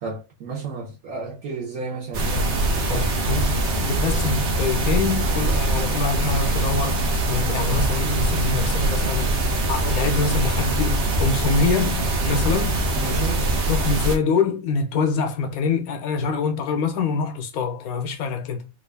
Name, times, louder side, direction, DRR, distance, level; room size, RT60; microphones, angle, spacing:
voice 1, 0.0-3.1 3.8-3.9 13.0-13.5, right 4 dB, 85° right, 1.3 m, -32 dB
sound 1, 2.1-14.2, right 2 dB, 60° right, 1.0 m, -23 dB
voice 2, 2.9-9.4 9.7-12.7 13.7-18.7, left 5 dB, 80° left, 1.2 m, -25 dB
3.2 x 2.4 x 3.3 m
omnidirectional pair, 1.5 m